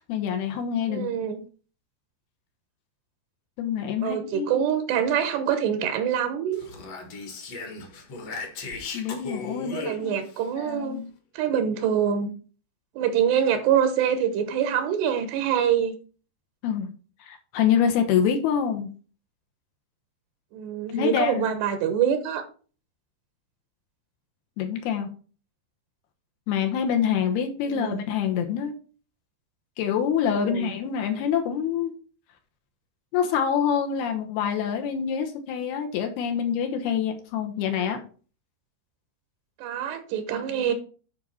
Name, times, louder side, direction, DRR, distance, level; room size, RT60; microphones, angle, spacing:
voice 1, 0.0-1.1 3.6-4.5 8.9-10.2 10.6-11.1 16.6-16.9 17.3-18.9 20.9-21.5 24.6-25.1 26.5-28.7 29.8-31.9 33.1-38.0, left 8 dB, 75° left, 4 dB, 2.9 m, -26 dB
voice 2, 0.9-1.4 4.0-6.6 9.7-11.0 11.3-12.3 13.0-15.9 20.5-22.4 27.7-28.0 30.3-30.7 39.6-40.7, right 8 dB, 85° right, 7 dB, 3.0 m, -25 dB
Speech, 6.5-10.4, left 3 dB, 55° left, 1.9 m, -37 dB
9.8 x 4.7 x 4.2 m, 0.38 s
omnidirectional pair, 4.8 m